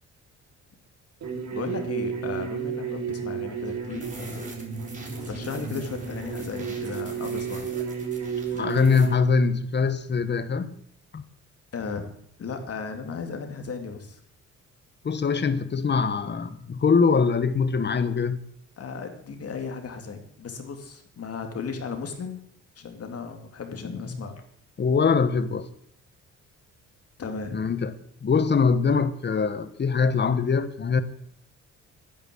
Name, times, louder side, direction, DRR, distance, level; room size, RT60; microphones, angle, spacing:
sound 1, 1.2-9.1, right 6 dB, 65° right, 3.8 m, -32 dB
voice 1, 1.5-4.5 5.3-7.7 11.7-12.1 12.4-14.2 18.8-22.4 22.8-24.3 27.2-27.7, left 5 dB, 50° left, 2.6 m, -35 dB
sound 2, 3.6-9.1, right 2 dB, 25° right, 4.2 m, -44 dB
voice 2, 8.5-10.8 11.1-11.2 15.0-18.4 23.8-24.2 24.8-25.7 27.5-27.9 28.2-31.0, left 5 dB, 35° left, 1.3 m, -23 dB
10.5 x 9.8 x 7.8 m
cardioid pair, 90°, 30 cm